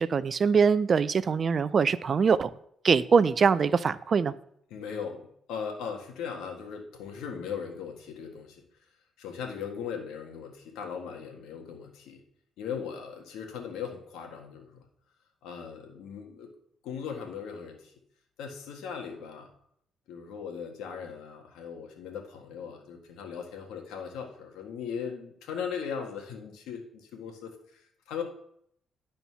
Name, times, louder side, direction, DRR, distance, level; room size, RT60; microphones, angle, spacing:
voice 1, 0.0-2.5 2.8-4.3, right 5 dB, 45° right, 16 dB, 0.4 m, -23 dB
voice 2, 4.7-8.6 9.2-12.2 12.6-14.9 15.4-16.5 16.8-17.9 18.4-19.5 20.1-28.2, left 7 dB, 90° left, 2 dB, 1.6 m, -38 dB
11.0 x 4.3 x 5.7 m, 0.70 s
cardioid pair, 90°, 0 cm